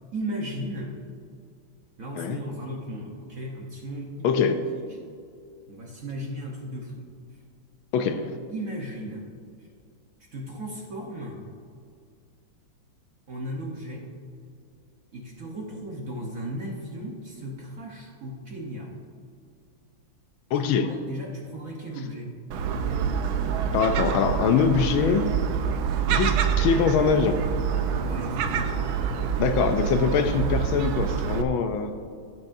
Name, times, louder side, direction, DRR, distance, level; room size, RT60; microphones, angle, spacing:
voice 1, 0.1-1.0 2.0-4.9 5.7-7.4 8.5-9.3 9.6-9.7 10.2-11.5 13.3-14.1 15.1-19.0 20.5-22.4 28.0-28.8, right 1 dB, 50° right, -1 dB, 1.1 m, -36 dB
voice 2, 4.2-4.6 7.9-8.3 20.5-20.8 23.7-25.3 26.1-27.4 29.4-31.9, left 6 dB, 75° left, 8 dB, 1.3 m, -23 dB
Gull seagull, 22.5-31.4, right 7 dB, 75° right, 1.4 m, -26 dB
16.5 x 7.9 x 2.6 m, 2.3 s
omnidirectional pair, 2.4 m